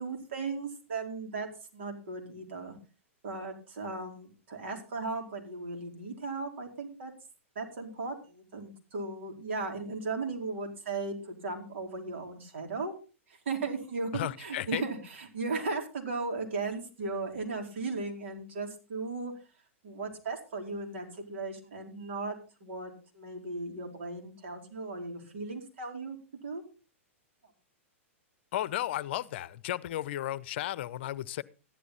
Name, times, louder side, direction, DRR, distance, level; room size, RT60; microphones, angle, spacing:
voice 1, 0.0-1.5 1.7-2.8 3.2-7.1 7.5-12.9 13.3-19.3 19.8-26.2 26.4-26.6, right 3 dB, 65° right, 3 dB, 4.4 m, -36 dB
voice 2, 14.1-14.8 28.5-31.4, left 13 dB, 55° left, 19 dB, 0.7 m, -34 dB
14.5 x 12.0 x 4.1 m, 0.33 s
figure-of-eight pair, 105°, 7 cm